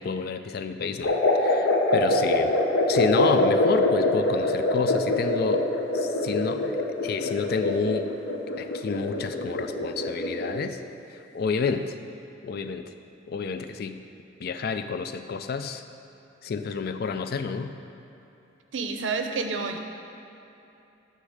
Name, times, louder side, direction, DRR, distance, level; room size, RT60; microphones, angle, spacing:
voice 1, 0.0-2.6 2.9-5.6 5.9-8.1 8.6-10.8 11.3-11.9 12.4-12.9 13.3-14.0 14.4-15.8 16.4-17.7, left 4 dB, 55° left, 9 dB, 0.4 m, -29 dB
sound 1, 1.0-10.6, left 1 dB, 85° left, 0.9 m, -24 dB
voice 2, 18.7-19.8, right 4 dB, 85° right, 5 dB, 0.6 m, -29 dB
9.5 x 3.3 x 6.5 m, 2.9 s
head